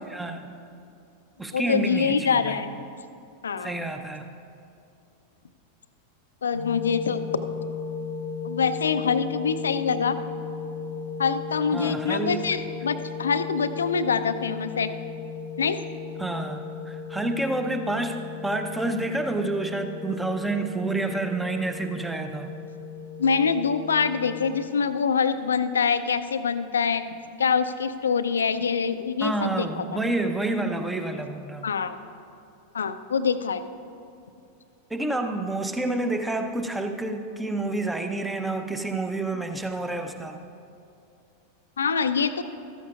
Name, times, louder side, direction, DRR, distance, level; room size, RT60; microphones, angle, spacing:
voice 1, 0.1-0.5 1.4-2.6 3.6-4.3 11.7-12.4 16.2-22.6 29.2-31.8 34.9-40.4, right 2 dB, 5° right, 6 dB, 0.7 m, -29 dB
voice 2, 1.5-2.7 3.4-3.8 6.4-7.2 8.4-10.2 11.2-14.9 15.6-15.8 23.2-27.0 27.4-29.8 31.6-32.0 32.7-33.6 41.8-42.4, left 6 dB, 70° left, 11 dB, 0.5 m, -25 dB
sound 1, 6.5-24.6, left 5 dB, 85° left, 0.9 m, -36 dB
14.0 x 13.5 x 2.4 m, 2.6 s
figure-of-eight pair, 90°, 0 cm